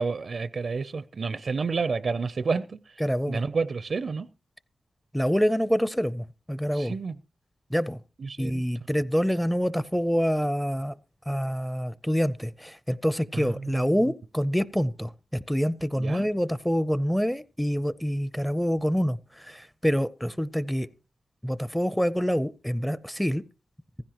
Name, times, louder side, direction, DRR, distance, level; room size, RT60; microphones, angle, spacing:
voice 1, 0.0-2.8 3.3-4.3 6.7-7.2 8.2-8.6 13.3-14.1 16.0-16.2, right 4 dB, 60° right, 0.5 m, -30 dB
voice 2, 3.0-3.4 5.1-6.9 7.7-8.0 8.4-10.9 11.3-20.9 21.4-23.4, equal, 5° left, 0.5 m, -26 dB
15.5 x 15.0 x 3.0 m
wide cardioid pair, 95°, 0 cm